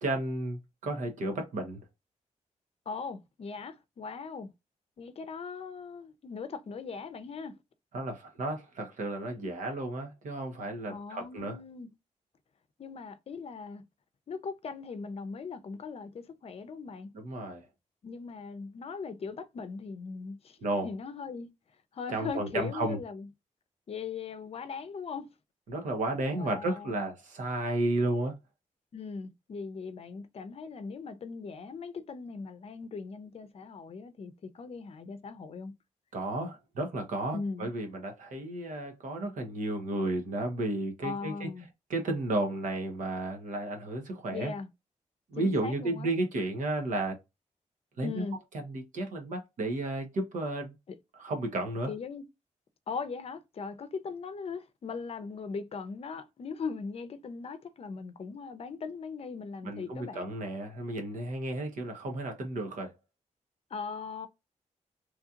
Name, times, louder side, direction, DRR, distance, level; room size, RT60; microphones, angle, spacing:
voice 1, 0.0-1.8 7.9-11.6 17.1-17.6 20.6-20.9 22.1-23.0 25.7-28.3 36.1-41.5 41.9-44.5 45.3-47.2 48.0-48.2 48.5-50.7 51.1-51.9 59.6-62.9, right 2 dB, 85° right, 1.1 m, -33 dB
voice 2, 2.9-4.5 5.0-7.5 10.9-11.9 12.8-13.8 14.3-17.1 18.0-20.6 20.8-21.5 21.9-23.3 23.9-25.3 26.3-27.1 28.9-35.7 37.3-37.7 41.0-41.7 44.3-44.7 45.3-46.1 48.0-48.4 51.9-52.2 52.9-60.3 63.7-64.3, left 5 dB, 50° left, 0.6 m, -39 dB
3.1 x 2.8 x 2.4 m
wide cardioid pair, 130°, 13 cm